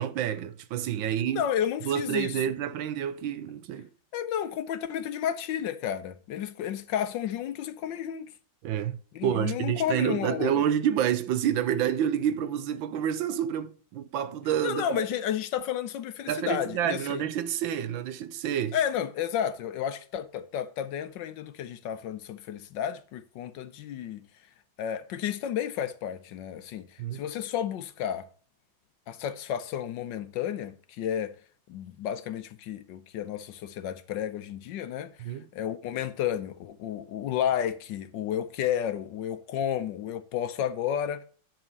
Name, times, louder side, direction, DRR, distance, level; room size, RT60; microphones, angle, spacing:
voice 1, 0.0-1.4 1.8-3.9 8.6-15.0 16.3-18.8 27.0-27.2 35.2-35.5, right 10 dB, 80° right, 1.5 m, -28 dB
voice 2, 1.3-2.4 4.1-8.3 9.1-10.6 14.6-17.2 18.7-24.2 24.8-28.2 29.1-31.4 31.7-41.2, left 9 dB, 70° left, 1.3 m, -32 dB
10.5 x 4.4 x 5.3 m
omnidirectional pair, 2.2 m